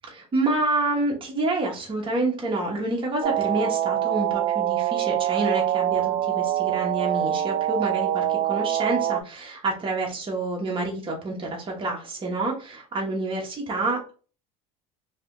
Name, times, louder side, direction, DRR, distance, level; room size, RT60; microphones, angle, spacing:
voice 1, 0.1-14.1, right 2 dB, 25° right, -1 dB, 1.1 m, -28 dB
sound 1, 3.2-9.2, right 12 dB, 50° right, 0.4 m, -25 dB
3.2 x 2.8 x 2.6 m, 0.37 s
supercardioid pair, 100°, 19 cm